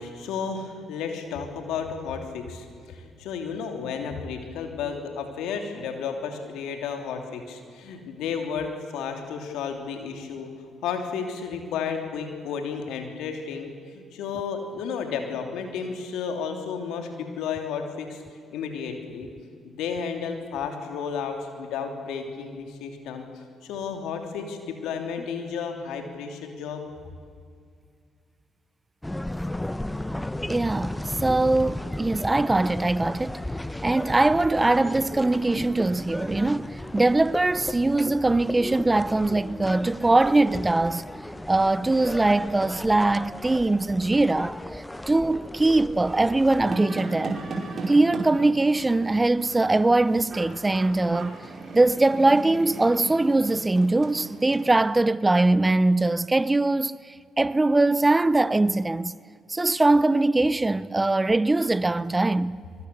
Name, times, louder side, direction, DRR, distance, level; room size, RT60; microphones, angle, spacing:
voice 1, 0.0-10.5 10.8-18.2 18.5-23.2 23.6-26.8, left 6 dB, 75° left, 3.1 m, -32 dB
sound 1, 29.0-46.8, left 1 dB, 10° left, 0.9 m, -35 dB
voice 2, 30.5-33.4 33.8-41.0 41.5-47.4 47.9-51.4 51.7-59.1 59.5-62.6, right 2 dB, 20° right, 0.7 m, -22 dB
sound 2, 46.7-54.8, right 3 dB, 45° right, 5.1 m, -36 dB
25.0 x 23.0 x 7.0 m
hypercardioid pair, 45°, 0 cm